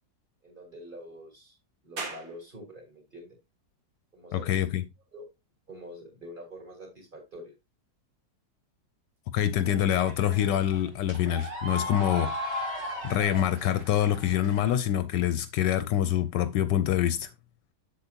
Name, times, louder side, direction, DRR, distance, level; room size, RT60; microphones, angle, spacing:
voice 1, 0.4-1.6 1.8-3.4 4.1-4.6 5.1-5.3 5.7-7.5, equal, 25° right, 3.2 m, -45 dB
sound 1, 2.0-15.1, right 3 dB, 50° right, 2.0 m, -51 dB
voice 2, 4.3-4.8 9.3-12.3 13.0-17.3, left 11 dB, 75° left, 1.2 m, -25 dB
sound 2, 9.5-14.8, left 1 dB, 75° right, 4.3 m, -37 dB
7.6 x 7.0 x 2.8 m
omnidirectional pair, 2.0 m